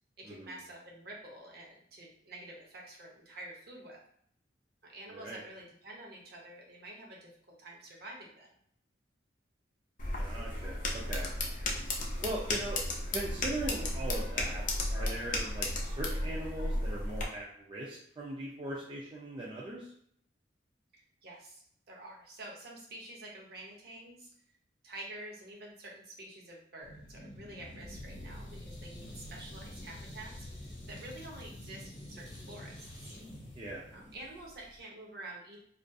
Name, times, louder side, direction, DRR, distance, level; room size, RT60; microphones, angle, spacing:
voice 1, 0.2-4.0 4.8-7.3 7.6-8.5 20.9-21.6 21.9-24.3 24.8-33.2 33.9-35.6, right 1 dB, 55° right, -1 dB, 0.7 m, -48 dB
sound 1, 10.0-17.2, left 1 dB, 45° left, 0.4 m, -34 dB
voice 2, 10.2-11.3 12.2-12.8 13.1-14.6 14.9-19.9 33.6-33.8, right 1 dB, 30° right, -3 dB, 0.3 m, -40 dB
sound 2, 26.8-34.8, left 1 dB, 70° left, 0.9 m, -47 dB
2.5 x 2.4 x 2.2 m, 0.65 s
head